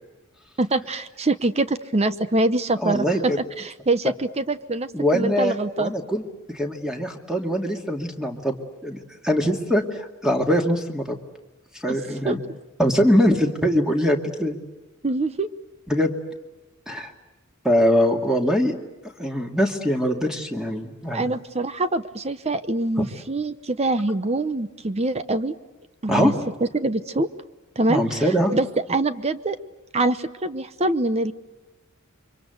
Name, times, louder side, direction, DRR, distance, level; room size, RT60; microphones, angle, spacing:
voice 1, 0.6-5.9 11.9-12.0 12.2-12.4 15.0-15.5 21.1-25.5 26.0-26.3 26.7-27.3 27.8-29.6 29.9-31.3, right 2 dB, 30° right, 12 dB, 0.8 m, -24 dB
voice 2, 2.8-3.4 4.9-6.2 6.5-8.6 8.8-9.0 9.2-11.2 11.8-12.4 12.8-14.6 15.9-16.2 16.9-17.1 17.6-18.7 19.2-21.3 23.0-23.1 26.1-26.3 27.9-28.5, equal, 5° right, 3 dB, 2.3 m, -22 dB
29.5 x 24.5 x 8.0 m, 1.1 s
head